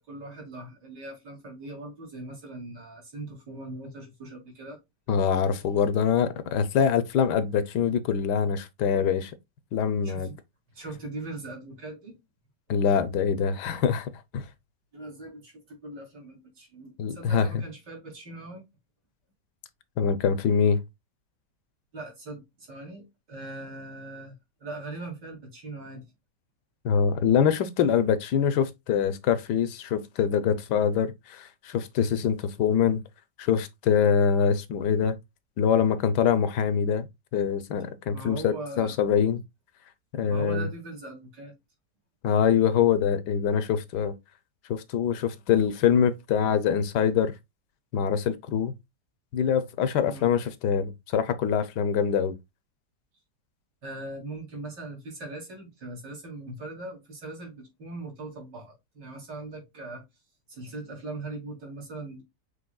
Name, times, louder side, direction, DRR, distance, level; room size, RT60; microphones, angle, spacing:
voice 1, 0.0-4.8 10.0-10.4 10.7-12.2 14.9-18.6 21.9-24.3 24.6-26.0 38.1-39.0 40.3-41.5 50.1-50.3 53.8-60.0 60.5-62.2, right 2 dB, 85° right, 3.2 m, -40 dB
voice 2, 5.1-9.3 9.7-10.3 12.7-14.4 17.0-17.6 20.0-20.8 26.8-33.0 33.4-35.2 35.6-37.1 37.3-39.4 40.1-40.7 42.2-44.2 44.7-47.3 47.9-48.7 49.3-52.4, left 7 dB, 80° left, 1.3 m, -24 dB
6.8 x 3.3 x 2.3 m
omnidirectional pair, 1.8 m